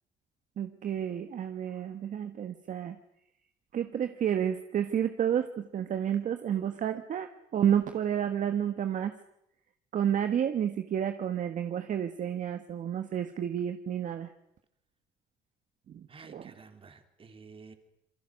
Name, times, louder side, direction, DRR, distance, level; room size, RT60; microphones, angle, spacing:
voice 1, 0.6-3.0 3.7-9.1 9.9-14.3 15.9-16.1 16.3-16.4, right 9 dB, 50° right, 8 dB, 1.4 m, -30 dB
voice 2, 16.1-17.7, right 5 dB, 35° right, 6 dB, 3.4 m, -51 dB
27.5 x 22.5 x 6.5 m, 0.80 s
cardioid pair, 110°, 17 cm